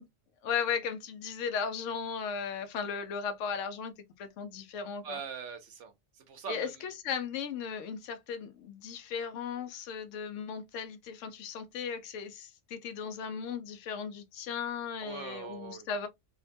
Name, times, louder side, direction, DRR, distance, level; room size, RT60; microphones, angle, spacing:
voice 1, 0.4-5.2 6.5-16.1, left 6 dB, 85° left, 0.9 m, -36 dB
voice 2, 5.0-6.8 15.0-15.9, right 6 dB, 75° right, 1.1 m, -42 dB
2.9 x 2.1 x 2.5 m
omnidirectional pair, 1.2 m